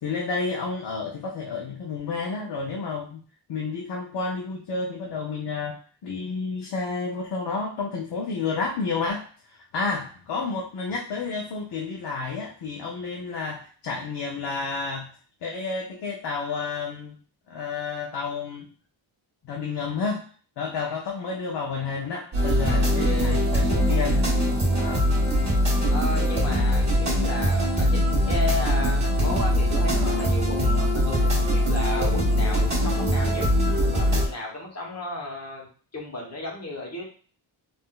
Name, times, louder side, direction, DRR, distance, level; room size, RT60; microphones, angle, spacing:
voice 1, 0.0-3.2 3.5-15.1 15.4-17.2 17.5-18.7 19.4-20.3 20.6-24.3 24.7-25.1, left 4 dB, 55° left, 0 dB, 0.6 m, -30 dB
sound 1, 22.3-34.3, equal, 35° right, 1.4 m, -22 dB
voice 2, 22.6-23.4 25.9-33.4 33.9-35.7 35.9-37.0, left 2 dB, 30° left, -2 dB, 1.0 m, -34 dB
3.7 x 2.5 x 2.3 m, 0.41 s
wide cardioid pair, 165°, 48 cm